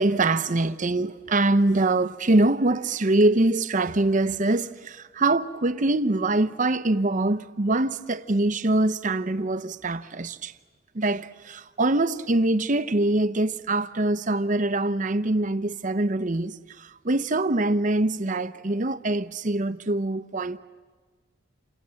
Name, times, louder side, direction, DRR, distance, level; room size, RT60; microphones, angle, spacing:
voice 1, 0.0-10.5 10.9-20.6, right 2 dB, 40° right, 0.8 m, -24 dB
28.5 x 27.0 x 7.7 m
head